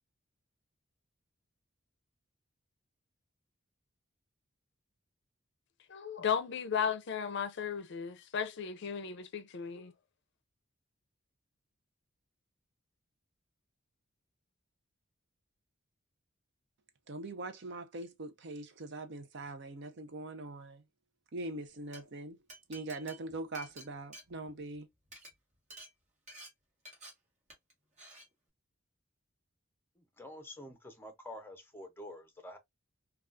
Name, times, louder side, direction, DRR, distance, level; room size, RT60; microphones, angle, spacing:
voice 1, 5.9-9.9, left 7 dB, 60° left, 0.5 m, -35 dB
voice 2, 17.1-20.8 21.3-22.4 22.7-24.9, right 2 dB, 60° right, 0.6 m, -42 dB
Glass, 21.7-22.0 22.5-24.8 25.0-25.3 25.7-25.9 26.3-26.5 26.9-27.1 27.5-27.7 28.0-28.3, equal, 35° right, 1.4 m, -50 dB
voice 3, 30.0-32.6, left 1 dB, 10° left, 0.6 m, -48 dB
3.5 x 2.3 x 2.4 m
head